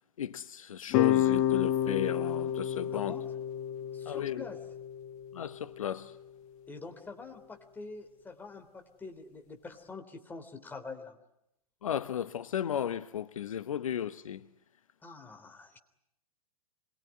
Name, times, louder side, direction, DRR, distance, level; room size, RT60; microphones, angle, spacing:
voice 1, 0.2-3.2 4.1-4.5 5.3-6.2 11.8-14.5, left 9 dB, 60° left, 1.0 m, -34 dB
sound 1, 0.9-6.0, left 11 dB, 35° left, 1.5 m, -30 dB
voice 2, 2.9-3.3 3.9-4.6 6.7-11.2 15.0-15.8, left 4 dB, 10° left, 3.4 m, -45 dB
26.5 x 22.5 x 9.8 m
figure-of-eight pair, 110°, 19 cm